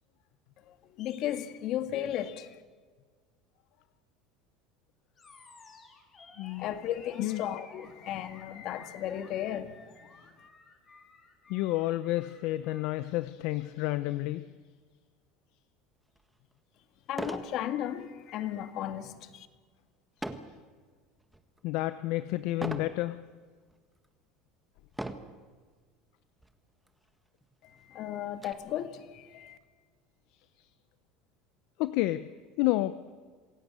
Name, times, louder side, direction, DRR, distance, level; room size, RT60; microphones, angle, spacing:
voice 1, 0.7-2.5 6.6-9.7 10.0-10.1 17.1-19.5 27.6-29.6, left 11 dB, 50° left, 2.0 m, -35 dB
Animal, 5.2-13.1, left 4 dB, 25° left, 4.1 m, -55 dB
voice 2, 6.4-6.7 7.2-7.4 11.5-14.4 21.6-23.2 31.8-32.3 32.6-33.0, left 17 dB, 65° left, 0.8 m, -30 dB
sound 1, 16.2-16.3 17.1-17.5 18.0-18.3 20.2-20.6 21.2-21.6 22.6-23.0 23.7-23.8 24.9-25.4 26.4-26.5 26.9-27.0 27.4-28.5, right 1 dB, 5° right, 1.5 m, -38 dB
26.5 x 17.0 x 8.3 m
supercardioid pair, 130°, 0 cm